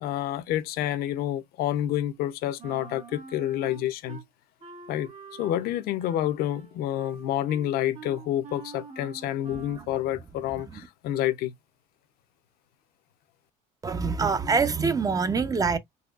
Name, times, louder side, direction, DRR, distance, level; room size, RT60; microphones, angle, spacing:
voice 1, 0.0-4.2 4.9-5.1 5.4-11.5, left 12 dB, 65° left, 0.6 m, -28 dB
Wind instrument woodwind instrument, 2.6-4.2 4.6-9.9, right 4 dB, 45° right, 1.6 m, -46 dB
voice 2, 13.8-15.8, right 5 dB, 20° right, 0.5 m, -24 dB
4.0 x 2.8 x 2.3 m
supercardioid pair, 105°, 17 cm